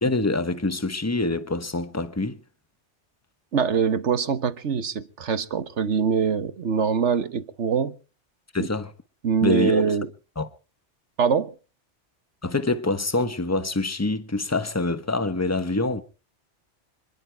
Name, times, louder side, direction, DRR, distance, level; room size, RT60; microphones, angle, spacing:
voice 1, 0.0-2.4 8.5-8.9 9.4-9.9 10.4-10.5 12.4-16.0, left 2 dB, 15° left, 1.1 m, -25 dB
voice 2, 3.5-7.9 8.6-8.7 9.2-10.1 11.2-11.5, right 6 dB, 75° right, 1.5 m, -23 dB
26.5 x 11.0 x 4.6 m
omnidirectional pair, 1.2 m